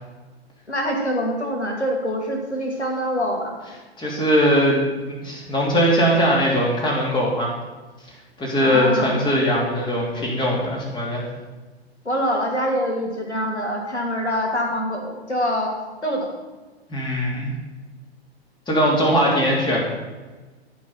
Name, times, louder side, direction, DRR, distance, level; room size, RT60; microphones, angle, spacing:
voice 1, 0.7-3.5 8.6-9.2 12.0-15.8 16.0-16.3, equal, 90° left, 1 dB, 2.6 m, -25 dB
voice 2, 4.0-7.5 8.4-11.2 16.9-17.5 18.7-19.8, equal, 15° left, -3 dB, 3.2 m, -20 dB
14.5 x 5.7 x 5.8 m, 1.3 s
figure-of-eight pair, 110°, 33 cm